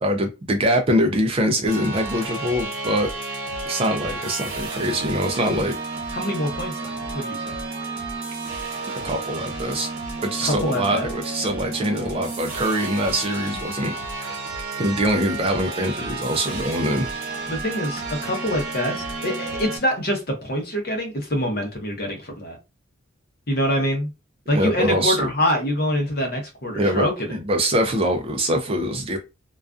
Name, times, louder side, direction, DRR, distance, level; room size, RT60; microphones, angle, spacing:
voice 1, 0.0-3.1 3.7-5.8 8.9-9.9 10.2-13.9 14.8-17.1 24.5-25.3 26.7-29.2, equal, 25° right, 0.3 m, -23 dB
sound 1, 1.7-19.8, right 3 dB, 75° right, 1.0 m, -31 dB
voice 2, 6.1-6.8 7.1-7.5 10.4-11.1 17.5-22.6 23.5-24.1 24.5-27.3, equal, 45° left, 0.7 m, -25 dB
2.3 x 2.2 x 2.4 m
head